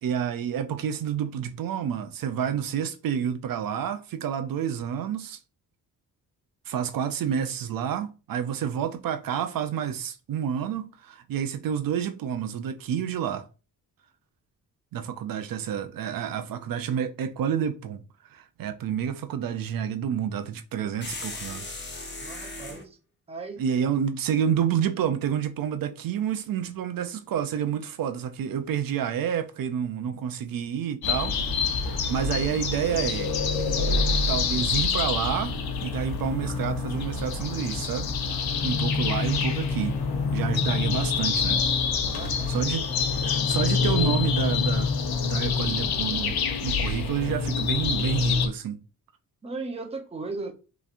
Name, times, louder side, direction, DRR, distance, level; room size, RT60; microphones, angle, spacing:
voice 1, 0.0-5.4 6.7-13.4 14.9-21.8 22.2-22.6 23.6-31.4 31.7-33.3 34.3-35.5 35.8-38.1 38.6-40.0 40.3-41.6 42.5-42.8 43.2-44.9 45.2-48.8, right 8 dB, 70° right, 0.6 m, -29 dB
sound 1, 21.0-22.9, left 2 dB, 30° left, 1.2 m, -37 dB
voice 2, 22.2-23.0 23.3-23.7 42.0-42.7 49.4-50.5, right 3 dB, 15° right, 0.7 m, -36 dB
sound 2, 31.0-48.5, left 5 dB, 80° left, 0.9 m, -26 dB
5.6 x 3.2 x 2.5 m
wide cardioid pair, 160°, 36 cm